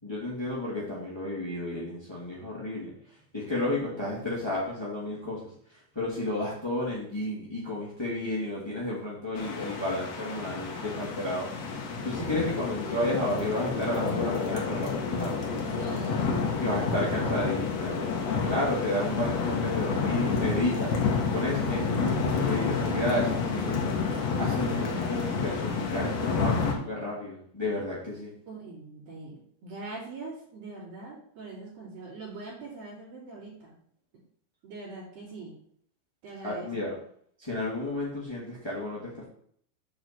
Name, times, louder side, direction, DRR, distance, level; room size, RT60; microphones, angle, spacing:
voice 1, 0.0-2.9 3.3-11.5 12.0-15.4 16.5-18.0 18.4-20.9 21.3-23.9 24.4-28.3 36.4-36.9 37.4-39.2, left 1 dB, 15° left, -6 dB, 0.8 m, -32 dB
voice 2, 3.5-4.0 15.6-17.6 28.5-33.8 34.6-35.5 36.2-36.7, right 3 dB, 55° right, -7 dB, 4.5 m, -43 dB
sound 1, 9.4-26.7, left 5 dB, 60° left, 1.8 m, -29 dB
8.7 x 4.8 x 6.9 m, 0.63 s
omnidirectional pair, 5.3 m